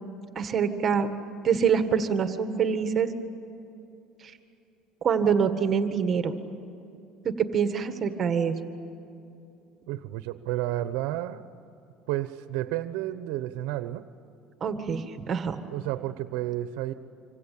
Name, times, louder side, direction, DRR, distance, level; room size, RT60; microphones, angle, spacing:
voice 1, 0.4-1.1 1.4-3.1 4.2-4.3 5.0-6.3 7.3-8.6 14.6-15.6, right 7 dB, 35° right, 8 dB, 1.8 m, -25 dB
voice 2, 9.9-11.5 12.1-14.1 15.7-16.9, right 14 dB, 80° right, 11 dB, 1.0 m, -31 dB
26.0 x 26.0 x 8.6 m, 2.7 s
cardioid pair, 125°, 0 cm